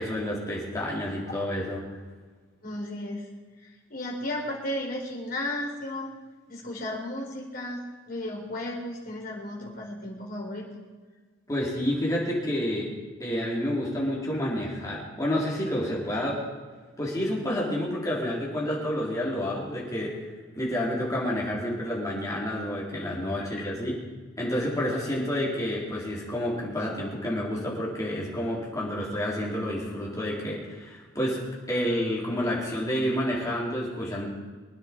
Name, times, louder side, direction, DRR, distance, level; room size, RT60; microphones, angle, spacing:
voice 1, 0.0-1.8 11.5-12.9 13.2-16.4 17.0-20.3 20.5-24.0 24.4-31.4 31.7-34.3, equal, 15° left, -5 dB, 4.1 m, -29 dB
voice 2, 2.6-3.3 3.9-6.1 6.5-10.7 23.6-23.7, left 1 dB, 45° left, -1 dB, 4.1 m, -34 dB
24.5 x 9.7 x 4.7 m, 1.4 s
head